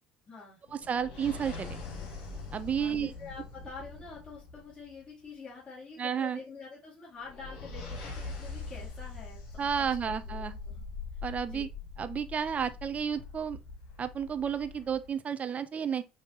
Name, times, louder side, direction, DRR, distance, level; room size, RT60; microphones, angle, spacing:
voice 1, 0.3-0.6 2.8-10.8 11.1-11.7, left 4 dB, 25° left, 2.3 m, -47 dB
sound 1, 0.7-5.1 7.2-15.1, left 4 dB, 70° left, 1.8 m, -43 dB
voice 2, 0.9-1.8 2.5-3.1 6.0-6.4 9.6-10.5 11.2-11.7 12.0-13.6 14.0-16.0, right 7 dB, 35° right, 0.5 m, -32 dB
5.2 x 2.8 x 2.8 m
hypercardioid pair, 65°, 4 cm